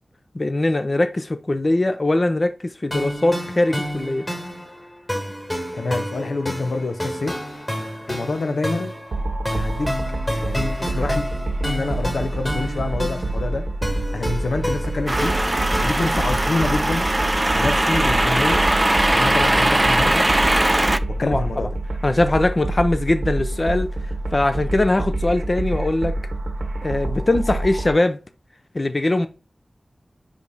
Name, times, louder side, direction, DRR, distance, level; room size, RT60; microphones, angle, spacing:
voice 1, 0.3-4.3 21.3-21.4 22.0-23.9 24.3-26.1 26.8-28.2 28.7-29.3, left 2 dB, 40° left, 0.7 m, -21 dB
sound 1, 2.9-15.8, equal, 25° left, 2.2 m, -30 dB
voice 2, 5.7-7.4 8.1-9.0 9.5-9.9 10.4-11.3 11.6-13.7 14.1-15.4 15.8-17.1 17.5-18.6 19.1-20.3 21.1-21.7, left 3 dB, 85° left, 0.8 m, -26 dB
sound 2, 9.1-27.9, right 2 dB, 80° right, 1.0 m, -27 dB
sound 3, 15.1-21.0, right 1 dB, 25° right, 0.5 m, -20 dB
5.2 x 5.2 x 4.1 m
cardioid pair, 50°, 0 cm